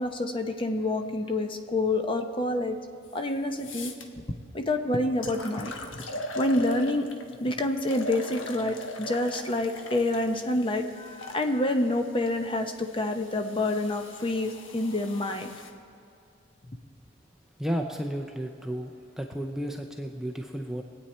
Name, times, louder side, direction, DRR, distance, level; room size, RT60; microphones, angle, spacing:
voice 1, 0.0-2.8 3.1-3.9 4.5-5.7 6.4-7.1 7.4-15.5, left 2 dB, 25° left, 5 dB, 0.8 m, -27 dB
sound 1, 3.1-3.2 3.6-4.0 4.7-4.8 5.2-7.3 7.8-11.4 12.3-15.7, left 1 dB, 90° left, 1.1 m, -39 dB
voice 2, 17.6-18.9 19.2-20.8, equal, 5° right, 2 dB, 0.5 m, -32 dB
21.5 x 8.7 x 4.3 m, 2.6 s
head